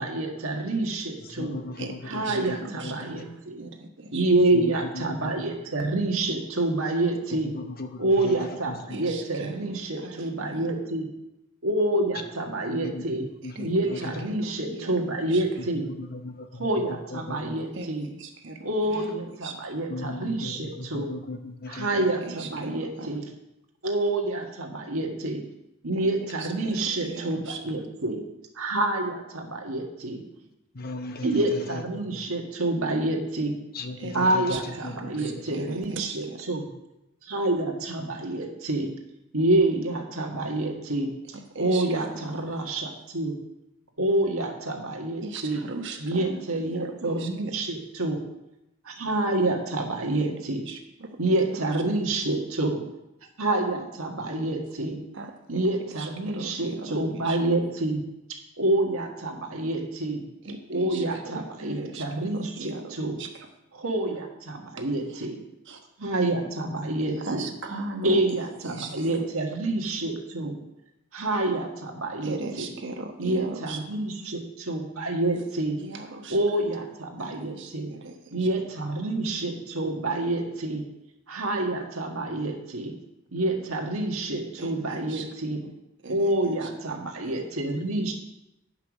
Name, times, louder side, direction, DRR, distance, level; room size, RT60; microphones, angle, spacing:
voice 1, 0.0-1.6 2.1-3.7 4.1-7.5 8.0-11.1 11.6-13.2 13.6-15.9 16.5-18.1 18.6-21.1 21.7-23.2 23.8-25.4 25.8-28.2 28.5-30.2 31.2-33.5 34.1-36.7 37.2-38.9 39.3-41.1 41.5-43.3 44.0-45.7 46.0-48.2 48.8-50.7 51.2-52.8 53.4-55.0 55.5-58.0 58.6-60.2 60.7-63.2 63.7-65.4 66.0-67.5 68.0-70.5 71.1-72.7 73.2-75.8 76.3-77.9 78.3-80.8 81.3-82.9 83.3-85.6 86.1-88.1, right 2 dB, 80° right, 2 dB, 1.6 m, -27 dB
voice 2, 1.2-3.2 4.5-5.3 7.4-9.1 12.7-14.3 15.6-16.7 17.1-17.5 19.9-21.9 30.7-32.2 33.7-35.7, left 2 dB, 45° left, 6 dB, 0.9 m, -37 dB
voice 3, 1.8-4.2 8.9-10.7 13.5-15.4 17.7-19.1 19.4-19.8 21.9-23.1 25.9-26.1 26.4-27.6 34.0-36.4 41.3-41.8 42.3-42.4 45.2-47.5 50.7-51.3 55.1-55.6 56.0-57.4 60.4-62.0 62.3-63.3 64.8-64.9 65.1-65.3 65.7-65.8 67.2-68.2 68.6-69.3 72.2-73.8 75.8-76.4 77.2-78.5 84.6-85.3 86.0-86.7 87.2-87.5, right 2 dB, 60° right, 4 dB, 1.2 m, -39 dB
9.9 x 5.8 x 6.1 m, 0.90 s
head